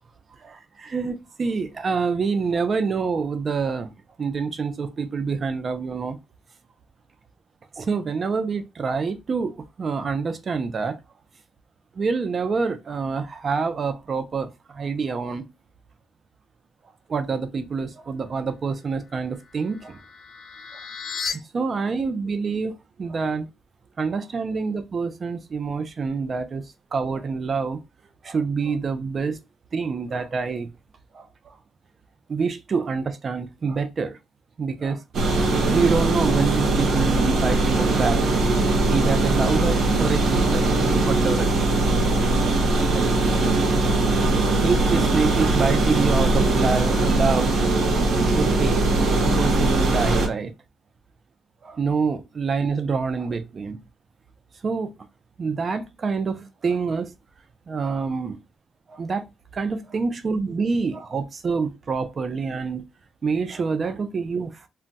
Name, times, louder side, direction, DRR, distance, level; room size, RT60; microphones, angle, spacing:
voice 1, 0.4-6.2 7.8-11.0 11.9-15.4 17.1-20.0 21.5-23.5 24.0-27.8 28.2-29.4 29.7-30.7 31.1-31.6 32.3-34.2 34.6-35.0 35.7-38.5 38.9-40.7 41.1-41.8 42.9-43.1 43.7-44.2 44.5-47.6 48.3-48.8 49.2-50.5 51.6-53.8 54.6-54.9 55.4-57.1 57.7-58.4 58.9-62.8 63.2-64.7, right 5 dB, 40° right, 0.5 m, -26 dB
sound 1, 19.1-21.3, left 6 dB, 65° left, 0.8 m, -35 dB
sound 2, 35.1-50.3, right 2 dB, 65° right, 0.8 m, -20 dB
2.2 x 2.2 x 3.9 m
cardioid pair, 90°, 0 cm